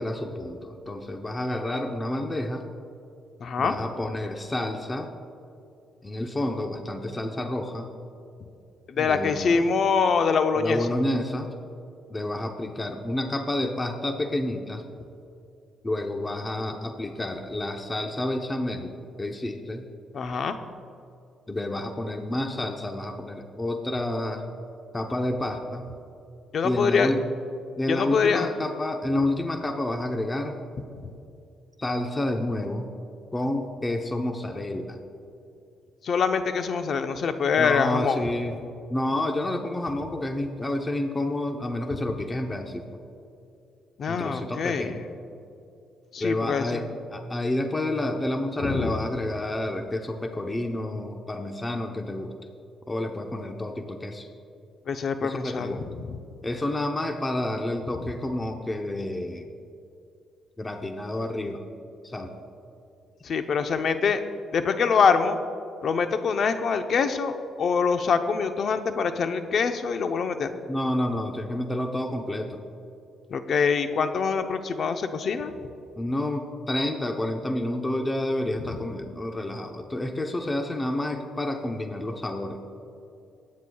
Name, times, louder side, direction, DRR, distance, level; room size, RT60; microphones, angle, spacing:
voice 1, 0.0-2.7 3.6-5.1 6.0-7.9 9.0-9.5 10.6-11.5 12.1-14.8 15.8-18.9 19.2-19.8 21.5-24.4 24.9-25.9 26.6-27.2 27.8-30.6 31.8-32.9 33.3-35.0 37.6-38.5 38.9-42.9 44.1-45.0 46.2-46.9 47.1-52.3 52.9-54.3 55.2-55.8 56.4-59.4 60.6-61.6 62.0-62.4 70.7-72.6 76.0-82.6, left 1 dB, 20° left, 4 dB, 0.8 m, -29 dB
voice 2, 3.4-3.7 8.9-10.9 20.1-20.6 26.5-27.1 27.9-28.5 31.0-31.1 36.0-38.2 44.0-45.0 46.1-46.8 48.6-49.0 54.9-56.2 58.0-58.1 63.2-64.2 64.5-65.4 65.8-70.5 73.3-75.5 78.6-78.8, left 5 dB, 55° left, 8 dB, 0.7 m, -24 dB
21.5 x 9.4 x 2.3 m, 2.6 s
cardioid pair, 90°, 0 cm